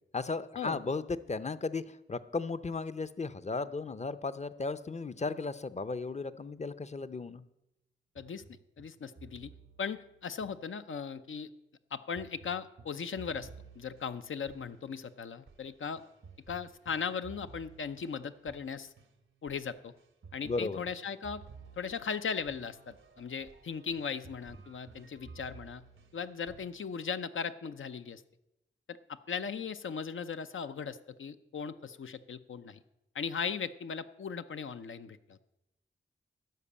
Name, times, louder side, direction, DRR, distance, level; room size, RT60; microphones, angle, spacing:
voice 1, 0.1-7.4 20.4-20.8, left 3 dB, 35° left, 14 dB, 0.6 m, -35 dB
sound 1, 8.2-11.3 12.1-26.9, right 5 dB, 90° right, 1.0 m, -55 dB
voice 2, 8.8-9.5 9.8-11.5 11.9-13.5 13.8-16.0 16.5-18.9 19.4-19.9 20.3-21.4 21.8-25.8 26.1-28.2 28.9-32.8 33.1-35.4, left 6 dB, 80° left, 11 dB, 0.6 m, -38 dB
12.5 x 5.1 x 8.5 m, 0.89 s
wide cardioid pair, 55°, 20 cm